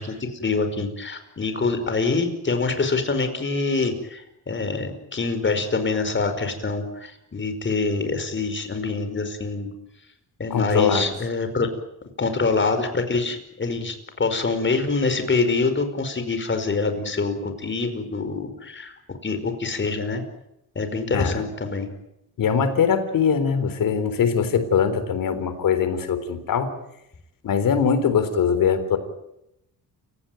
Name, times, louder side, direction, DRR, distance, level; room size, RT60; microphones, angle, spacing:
voice 1, 0.0-9.7 10.4-11.7 12.2-20.2 20.7-21.9, left 3 dB, 35° left, 8 dB, 5.1 m, -25 dB
voice 2, 10.5-11.0 21.1-21.4 22.4-26.7 27.4-29.0, left 6 dB, 75° left, 11 dB, 3.9 m, -22 dB
29.0 x 17.0 x 9.3 m, 0.83 s
cardioid pair, 105°, 34 cm